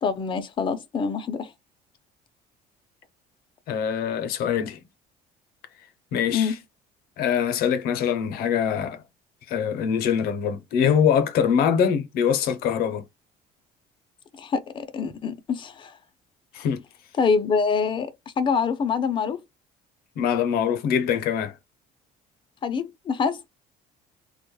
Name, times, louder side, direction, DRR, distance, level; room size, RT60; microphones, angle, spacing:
voice 1, 0.0-1.5 6.3-6.5 14.4-15.9 17.2-18.1 18.4-19.4 22.6-23.4, left 5 dB, 30° left, 0.5 m, -25 dB
voice 2, 3.7-4.8 6.1-6.5 7.2-9.0 9.5-13.0 16.5-16.8 20.2-21.5, left 8 dB, 70° left, 0.6 m, -23 dB
2.2 x 2.1 x 3.0 m
cardioid pair, 115°, 16 cm